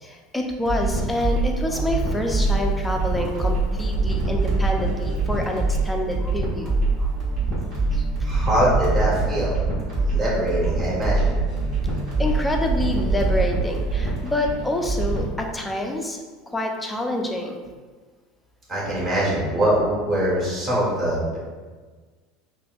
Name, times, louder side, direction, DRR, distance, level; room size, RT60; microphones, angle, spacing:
voice 1, 0.0-7.1 7.9-8.1 12.2-16.2 16.5-17.6, left 1 dB, 5° left, 1 dB, 0.5 m, -27 dB
sound 1, 0.6-15.3, right 3 dB, 50° right, 1.4 m, -24 dB
voice 2, 8.2-9.5 10.0-11.4 18.7-21.4, equal, 25° right, -6 dB, 1.5 m, -23 dB
5.3 x 2.6 x 2.4 m, 1.4 s
supercardioid pair, 135°, 0 cm